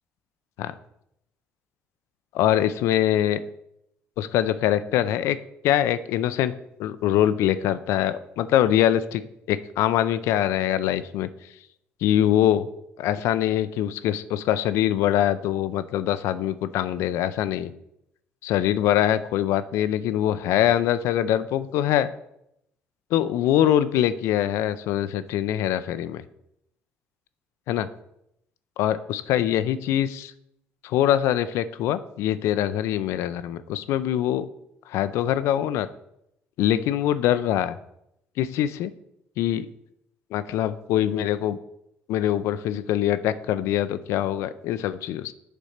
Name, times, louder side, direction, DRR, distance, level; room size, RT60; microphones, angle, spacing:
voice 1, 2.3-3.4 4.2-5.4 5.6-6.5 6.8-9.2 9.5-11.3 12.0-12.7 13.0-17.7 18.4-22.1 23.1-26.2 27.7-27.9 28.8-30.3 30.8-34.5 34.9-35.9 36.6-37.8 38.4-38.9 39.4-39.7 40.3-41.6 42.1-45.3, left 11 dB, 80° left, 13 dB, 0.4 m, -23 dB
6.7 x 4.1 x 6.4 m, 0.79 s
cardioid pair, 100°, 5 cm